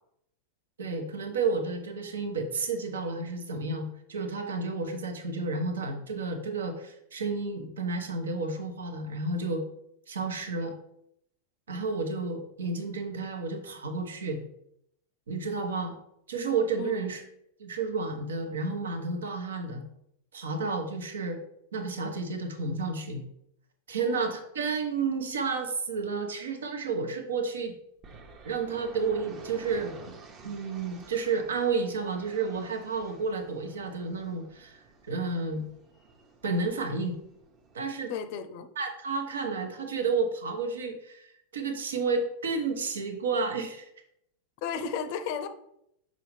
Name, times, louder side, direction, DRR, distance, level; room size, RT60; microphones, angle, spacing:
voice 1, 0.8-9.6 10.1-10.7 11.7-14.4 15.3-15.9 16.3-17.2 17.6-19.8 20.3-21.4 21.7-23.2 23.9-27.7 28.4-30.0 30.4-34.8 35.1-35.6 36.4-37.2 37.7-38.1 38.8-43.9, right 4 dB, 65° right, 5 dB, 1.0 m, -31 dB
sound 1, 28.0-37.9, right 4 dB, 35° right, 1.0 m, -51 dB
voice 2, 38.1-38.7 44.6-45.5, left 6 dB, 45° left, 9 dB, 0.6 m, -34 dB
6.8 x 5.2 x 3.2 m, 0.75 s
figure-of-eight pair, 90°, 0 cm